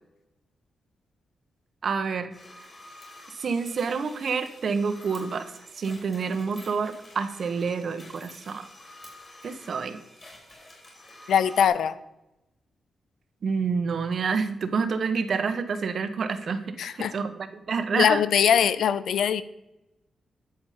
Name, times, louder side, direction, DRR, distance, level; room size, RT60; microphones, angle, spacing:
voice 1, 1.8-2.3 3.4-5.5 5.8-8.7 9.4-10.0 13.4-16.6 16.9-18.2, right 5 dB, 60° right, 9 dB, 1.2 m, -28 dB
sound 1, 2.3-11.7, left 1 dB, 30° left, 4.7 m, -49 dB
voice 2, 11.3-12.0 16.8-17.1 17.9-19.4, left 8 dB, 85° left, 15 dB, 0.6 m, -22 dB
12.5 x 7.2 x 5.1 m, 0.94 s
cardioid pair, 110°, 0 cm